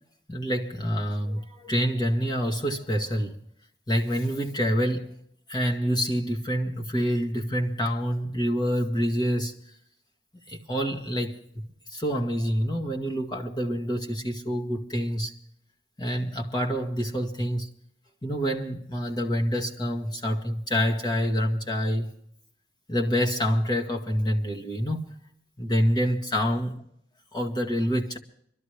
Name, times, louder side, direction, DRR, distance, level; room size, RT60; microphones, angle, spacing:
voice 1, 0.3-3.4 3.9-5.2 5.5-9.6 10.5-11.4 11.9-15.3 16.0-17.7 18.2-22.1 22.9-25.0 25.6-26.7 27.3-28.2, equal, 25° left, 1.8 m, -27 dB
24.5 x 13.0 x 3.3 m
head